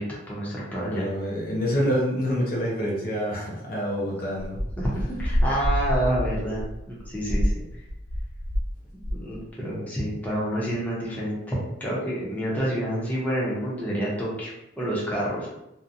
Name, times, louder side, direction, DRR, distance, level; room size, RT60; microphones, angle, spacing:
voice 1, 0.0-1.1 4.8-6.6 6.9-7.8 9.1-15.5, right 1 dB, 10° left, -7 dB, 0.7 m, -28 dB
voice 2, 0.8-4.6, equal, 50° left, -3 dB, 0.5 m, -27 dB
sound 1, 4.4-8.7 9.0-9.4, equal, 75° right, 0.6 m, -27 dB
2.7 x 2.1 x 2.5 m, 0.87 s
head